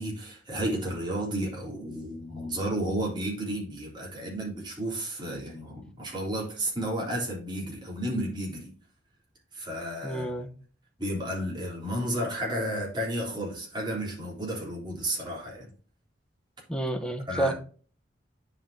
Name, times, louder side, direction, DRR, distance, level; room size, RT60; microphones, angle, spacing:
voice 1, 0.0-8.7 9.5-10.3 11.0-15.7 17.3-17.5, right 1 dB, 25° right, 3.5 m, -32 dB
voice 2, 10.0-10.5 16.7-17.5, right 1 dB, 5° left, 1.0 m, -29 dB
10.0 x 5.6 x 2.8 m
head